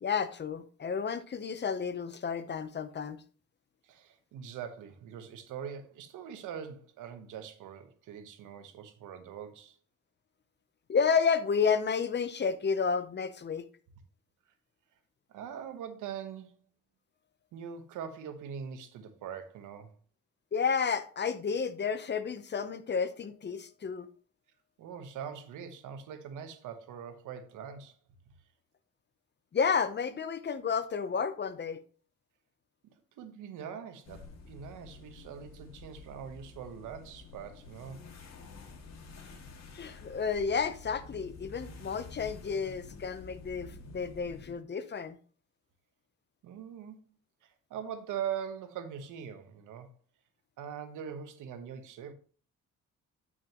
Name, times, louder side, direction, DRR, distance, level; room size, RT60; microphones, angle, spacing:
voice 1, 0.0-3.2 10.9-13.7 20.5-24.1 29.5-31.8 39.7-45.2, left 6 dB, 35° left, 0.8 m, -31 dB
voice 2, 3.8-9.8 15.3-16.6 17.5-19.9 24.8-28.0 32.8-38.0 46.4-47.0 47.4-50.0 50.6-52.1, right 8 dB, 85° right, 1.1 m, -42 dB
sound 1, 34.1-44.5, left 3 dB, 60° left, 2.0 m, -49 dB
8.9 x 6.2 x 3.0 m
cardioid pair, 90°, 30 cm